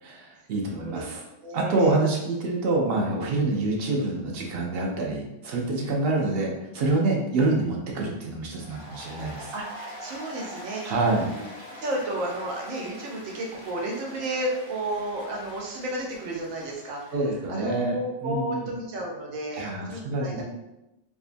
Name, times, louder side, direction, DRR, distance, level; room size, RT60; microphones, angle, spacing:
voice 1, 0.0-1.2 1.5-9.5 10.8-11.3 17.1-17.9 18.2-18.7 19.5-20.4, right 2 dB, 65° right, -1 dB, 0.6 m, -26 dB
voice 2, 1.4-2.0 9.5-11.3 11.8-17.0 17.5-20.4, right 1 dB, 85° right, -1 dB, 1.1 m, -32 dB
Applause, 8.5-17.2, equal, 30° right, 1.2 m, -43 dB
2.7 x 2.3 x 2.5 m, 0.93 s
omnidirectional pair, 1.3 m